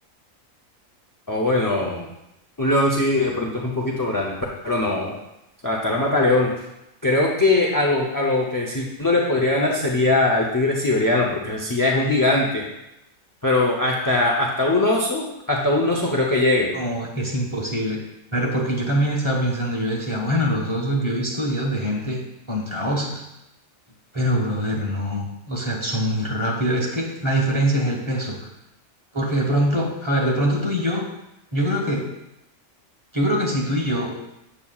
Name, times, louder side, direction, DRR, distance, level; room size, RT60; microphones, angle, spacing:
voice 1, 1.3-2.1 2.6-4.4 4.6-5.1 5.6-6.5 7.0-12.6 13.4-16.7, left 2 dB, 25° left, -1 dB, 0.4 m, -21 dB
voice 2, 16.7-18.0 18.3-22.2 22.5-23.2 24.1-28.4 29.1-31.0 31.5-32.0 33.1-34.1, equal, 25° right, -2 dB, 1.1 m, -23 dB
7.3 x 7.0 x 2.4 m, 0.88 s
omnidirectional pair, 1.4 m